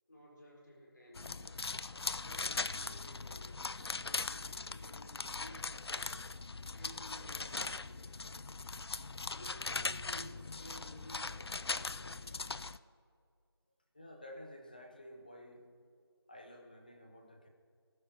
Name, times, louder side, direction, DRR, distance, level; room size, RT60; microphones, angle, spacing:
voice 1, 0.1-1.5 2.2-6.1 6.7-8.3 9.3-12.7, equal, 45° left, -4 dB, 4.1 m, -56 dB
sound 1, 1.1-12.8, left 3 dB, 75° left, 0.4 m, -40 dB
voice 2, 13.9-15.7 16.3-17.5, left 1 dB, 20° left, 2 dB, 0.8 m, -52 dB
19.5 x 13.0 x 2.9 m, 2.3 s
figure-of-eight pair, 170°, 14 cm